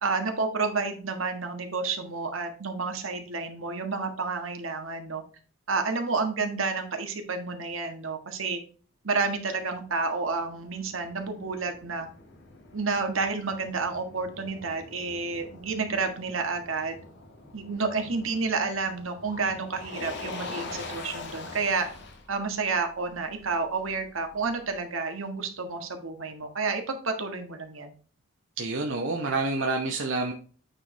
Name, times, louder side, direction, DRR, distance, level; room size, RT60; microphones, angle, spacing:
voice 1, 0.0-5.2 5.7-8.6 9.0-12.1 12.7-17.0 17.5-21.9 22.3-27.9, right 4 dB, 85° right, 5 dB, 1.6 m, -30 dB
Motor vehicle (road), 9.9-24.8, left 3 dB, 60° left, 1.7 m, -44 dB
voice 2, 28.6-30.3, right 3 dB, 70° right, 1 dB, 1.0 m, -28 dB
8.9 x 4.7 x 3.4 m, 0.39 s
head